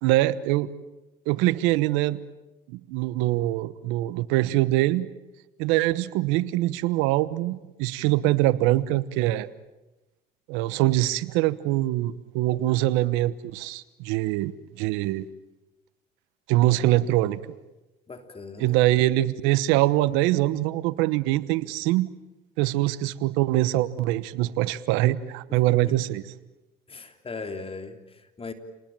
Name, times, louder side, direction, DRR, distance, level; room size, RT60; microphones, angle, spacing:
voice 1, 0.0-0.7 1.3-2.2 2.7-5.1 5.6-9.5 10.5-14.5 14.8-15.3 16.5-17.4 18.6-22.1 22.6-26.2, right 16 dB, 85° right, 16 dB, 1.1 m, -23 dB
voice 2, 18.1-18.8 25.5-26.0 26.9-28.5, left 4 dB, 30° left, 6 dB, 3.3 m, -39 dB
29.5 x 20.0 x 9.0 m, 1.0 s
supercardioid pair, 75°, 20 cm